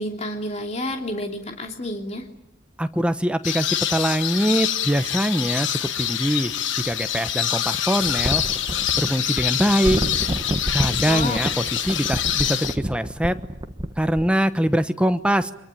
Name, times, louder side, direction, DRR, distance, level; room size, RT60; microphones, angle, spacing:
voice 1, 0.0-2.2 11.1-11.4, left 1 dB, 35° left, 3 dB, 3.0 m, -29 dB
voice 2, 2.8-8.4 9.0-10.0 10.7-13.4 14.0-15.5, equal, 5° right, 9 dB, 1.0 m, -23 dB
sound 1, 3.4-12.8, left 10 dB, 70° left, 1.3 m, -25 dB
sound 2, 3.7-3.8 6.0-7.2 8.0-14.3, right 1 dB, 25° right, 1.3 m, -30 dB
25.0 x 23.0 x 9.1 m, 0.81 s
head